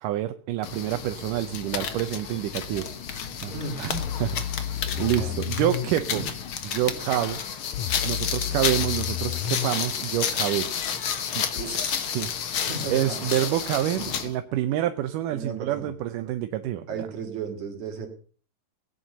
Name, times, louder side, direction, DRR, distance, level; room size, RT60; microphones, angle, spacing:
voice 1, 0.0-2.9 3.1-4.7 5.0-6.2 6.7-7.4 8.0-10.7 11.4-12.3 12.9-16.9, right 13 dB, 75° right, 8 dB, 2.2 m, -28 dB
sound 1, 0.6-14.3, left 7 dB, 60° left, 1.5 m, -31 dB
voice 2, 3.4-3.9 5.0-5.4 6.1-6.2 11.5-11.8 12.6-13.2 15.3-15.9 16.9-18.1, right 5 dB, 55° right, 3 dB, 4.1 m, -35 dB
sound 2, 3.9-5.9 7.7-9.7 11.6-11.7, left 11 dB, 75° left, 1.6 m, -31 dB
17.5 x 9.2 x 6.8 m, 0.42 s
omnidirectional pair, 4.1 m